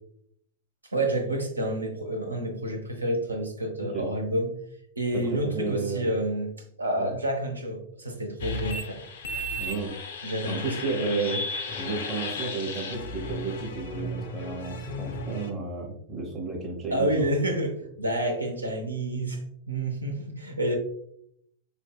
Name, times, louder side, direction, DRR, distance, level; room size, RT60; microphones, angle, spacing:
voice 1, 0.9-4.5 5.0-9.0 10.2-11.2 16.9-19.4 19.7-20.8, right 1 dB, 80° right, 4 dB, 0.6 m, -29 dB
voice 2, 5.1-6.1 7.0-7.1 9.6-9.9 10.4-11.5 11.8-17.3, right 3 dB, 20° right, -5 dB, 0.9 m, -32 dB
sound 1, 8.4-15.5, left 1 dB, 60° left, 0.4 m, -35 dB
4.2 x 2.6 x 2.2 m, 0.69 s
figure-of-eight pair, 90°, 0 cm